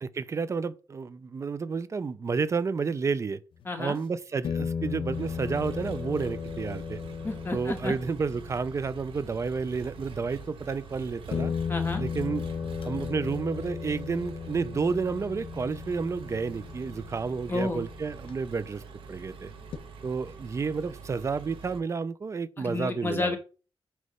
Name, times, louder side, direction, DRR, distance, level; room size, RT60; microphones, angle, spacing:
voice 1, 0.0-3.4 3.8-7.0 7.5-11.5 12.0-12.5 12.8-18.8 19.1-19.5 20.0-23.4, right 5 dB, 35° right, 0.4 m, -31 dB
sound 1, 3.6-3.7 4.4-9.5 10.7-10.8 11.3-18.7 19.7-19.8, left 6 dB, 75° left, 0.8 m, -36 dB
voice 2, 3.6-4.0 7.2-7.9 11.7-12.0 17.5-17.8 22.6-23.4, left 2 dB, 25° left, 1.4 m, -31 dB
Engine, 5.1-21.8, right 5 dB, 90° right, 1.1 m, -45 dB
6.4 x 3.1 x 5.4 m
wide cardioid pair, 140°, 9 cm